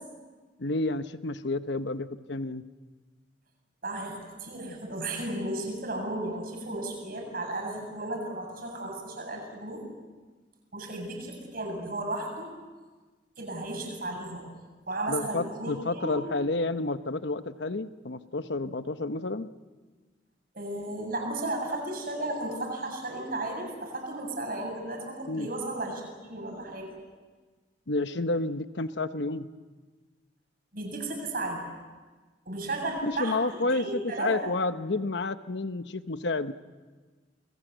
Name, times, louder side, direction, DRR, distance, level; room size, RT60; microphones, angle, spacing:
voice 1, 0.6-2.6 15.1-19.5 25.3-25.5 27.9-29.5 33.0-36.5, left 2 dB, 65° left, 11 dB, 1.0 m, -30 dB
voice 2, 3.8-9.8 10.7-12.5 13.4-14.5 14.9-16.2 20.5-27.0 30.7-31.6 32.5-34.5, right 2 dB, 50° right, 2 dB, 7.8 m, -34 dB
29.0 x 22.0 x 8.0 m, 1.3 s
head